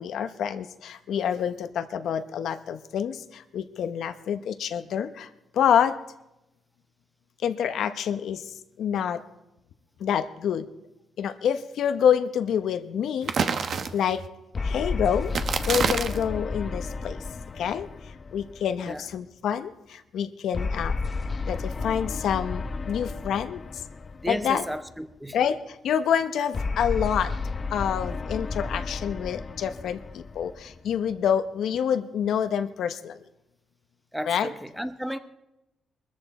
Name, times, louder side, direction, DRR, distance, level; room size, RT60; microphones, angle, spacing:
voice 1, 0.0-6.0 7.4-8.4 8.8-9.2 10.0-10.7 11.2-13.3 13.9-14.2 14.6-15.3 15.7-17.2 17.6-17.9 18.3-21.0 21.5-23.6 24.3-24.6 25.3-27.3 27.7-33.2 34.3-34.5, left 8 dB, 75° left, 0.9 m, -27 dB
sound 1, 13.2-14.3 15.3-16.3, right 6 dB, 55° right, 1.0 m, -27 dB
sound 2, 14.5-19.1 20.5-24.9 26.5-31.1, left 4 dB, 35° left, 0.7 m, -32 dB
voice 2, 24.2-25.4 34.1-35.2, equal, 5° right, 0.8 m, -33 dB
22.5 x 14.0 x 4.2 m
cardioid pair, 120°, 0 cm